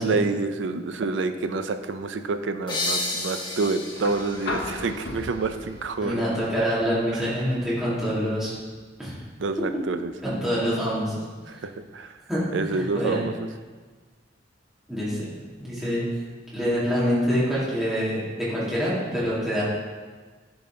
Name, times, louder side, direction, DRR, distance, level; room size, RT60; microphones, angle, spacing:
voice 1, 0.0-6.3 7.1-7.3 9.4-10.1 11.5-12.2 12.5-13.5, right 3 dB, 80° right, 9 dB, 0.5 m, -28 dB
sound 1, 2.7-6.1, left 2 dB, 25° left, 1.3 m, -32 dB
sound 2, 4.0-12.0 13.4-13.5, left 2 dB, 65° left, 0.9 m, -39 dB
voice 2, 6.0-8.6 9.0-9.1 10.2-11.2 12.3-12.4 12.7-13.2 14.9-15.3 15.6-16.0 16.5-19.6, equal, 5° right, -11 dB, 2.3 m, -26 dB
10.5 x 4.0 x 3.8 m, 1.4 s
head